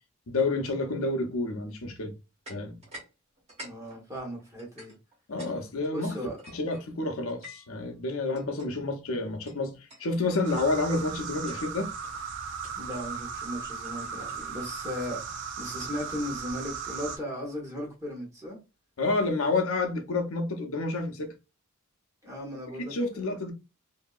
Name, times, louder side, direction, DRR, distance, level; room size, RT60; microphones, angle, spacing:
voice 1, 0.3-2.1 2.5-2.8 5.3-6.1 6.5-11.9 19.0-21.3 22.8-23.5, left 3 dB, 70° left, 0.7 m, -29 dB
sound 1, 2.4-3.1 3.4-5.5 5.8-7.8 8.3-8.7 9.5-9.6 9.9-10.1 10.4-10.7 11.3-11.7 12.0-12.2 12.6-13.1 13.8-16.3, equal, 30° right, 1.5 m, -49 dB
voice 2, 3.6-4.9 5.9-6.4 12.8-18.6 22.2-22.9, equal, 15° right, 1.2 m, -37 dB
sound 2, 10.4-17.2, right 6 dB, 60° right, 0.4 m, -37 dB
2.8 x 2.6 x 2.4 m
head